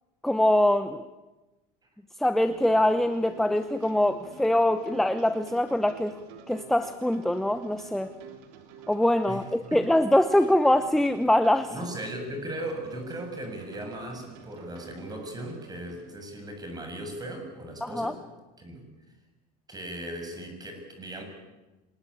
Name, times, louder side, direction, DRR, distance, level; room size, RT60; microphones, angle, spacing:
voice 1, 0.2-1.0 2.2-6.2 6.5-8.1 8.9-11.7 17.8-18.1, left 1 dB, ahead, 11 dB, 0.8 m, -23 dB
sound 1, 2.2-16.1, right 6 dB, 80° right, 3.6 m, -49 dB
voice 2, 11.7-18.2 18.6-18.9 19.7-21.2, right 1 dB, 20° right, 4 dB, 7.4 m, -37 dB
26.0 x 20.5 x 8.7 m, 1.1 s
supercardioid pair, 125°, 20 cm